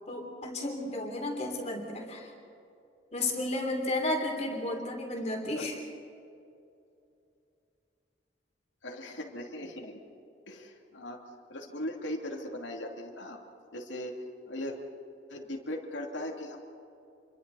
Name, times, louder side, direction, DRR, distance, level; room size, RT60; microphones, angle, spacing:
voice 1, 0.1-2.3 3.1-5.8, left 1 dB, 35° left, 1 dB, 3.5 m, -33 dB
voice 2, 8.8-10.0 10.5-11.2 11.5-13.4 13.7-14.2 14.5-14.8 15.3-16.6, left 1 dB, 90° left, 1 dB, 2.8 m, -38 dB
28.0 x 24.0 x 4.2 m, 2.6 s
head